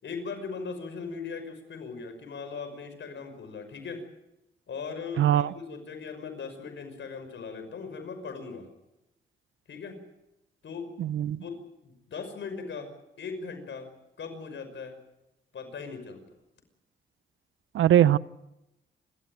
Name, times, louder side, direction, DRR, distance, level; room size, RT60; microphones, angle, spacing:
voice 1, 0.0-4.0 4.7-8.7 9.7-10.0 10.6-10.9 11.4-13.9 14.2-15.0 15.5-16.2, left 5 dB, 70° left, 7 dB, 5.8 m, -39 dB
voice 2, 5.2-5.5 11.0-11.4 17.7-18.2, right 11 dB, 85° right, 17 dB, 0.8 m, -21 dB
29.0 x 13.5 x 9.1 m, 0.90 s
cardioid pair, 70°, 20 cm